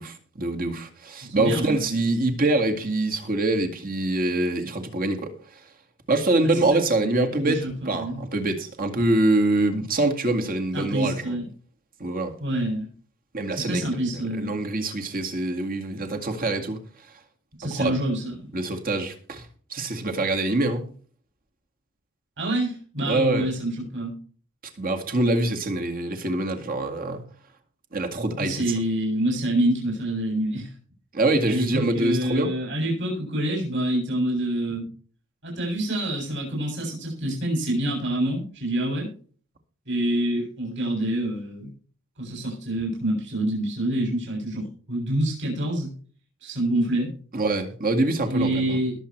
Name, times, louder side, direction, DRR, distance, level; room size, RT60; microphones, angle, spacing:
voice 1, 0.0-5.3 6.1-11.3 12.0-12.3 13.3-16.8 17.7-18.0 18.5-19.5 19.7-20.9 23.1-23.5 24.8-27.2 27.9-28.6 31.1-32.5 47.3-48.8, right 2 dB, 45° right, 2.1 m, -25 dB
voice 2, 1.2-1.9 6.4-6.6 7.3-8.2 10.7-11.5 12.4-12.9 13.5-14.5 17.6-18.5 22.4-24.2 28.4-30.7 31.5-34.9 35.4-39.1 39.9-41.7 42.2-45.9 46.4-47.1 48.2-49.0, right 1 dB, 60° right, 7.7 m, -27 dB
21.0 x 7.6 x 3.3 m
head